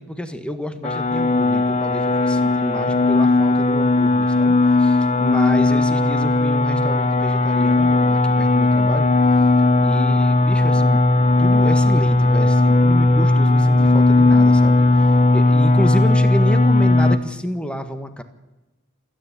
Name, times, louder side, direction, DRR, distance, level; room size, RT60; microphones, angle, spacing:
voice 1, 0.0-9.1 9.8-11.0 11.4-18.2, equal, 5° left, 8 dB, 1.6 m, -29 dB
sound 1, 0.8-17.2, left 2 dB, 35° left, 0.9 m, -16 dB
27.5 x 9.9 x 9.8 m, 1.1 s
head